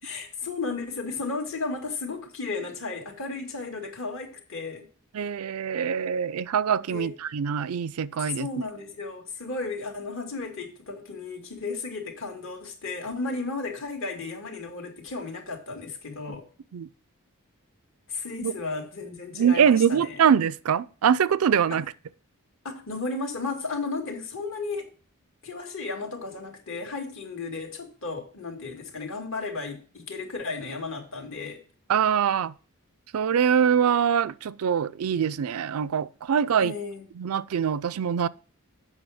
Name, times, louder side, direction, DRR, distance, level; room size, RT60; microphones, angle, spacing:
voice 1, 0.0-4.9 6.9-7.1 8.3-16.4 18.1-20.2 21.7-21.8 22.6-24.9 25.4-31.6 36.6-37.0, left 3 dB, 65° left, 2.1 m, -34 dB
voice 2, 5.1-8.5 16.7-16.9 18.4-18.5 19.3-21.9 31.9-32.5 33.1-36.7 37.2-38.3, right 7 dB, 80° right, 0.4 m, -23 dB
7.8 x 6.0 x 4.9 m
head